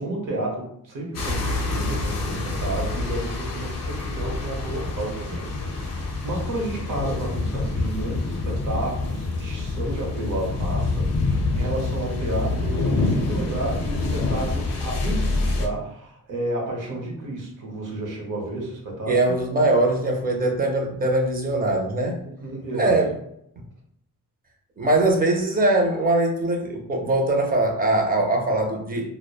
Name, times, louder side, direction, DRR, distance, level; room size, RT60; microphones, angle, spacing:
voice 1, 0.0-19.3 22.2-23.0, right 2 dB, 65° right, -1 dB, 0.9 m, -31 dB
sound 1, 1.1-15.7, left 3 dB, 50° left, 0.5 m, -26 dB
voice 2, 19.1-22.2 22.7-23.1 24.8-29.1, right 2 dB, 25° right, 1 dB, 0.5 m, -21 dB
2.9 x 2.1 x 2.2 m, 0.73 s
wide cardioid pair, 150°, 34 cm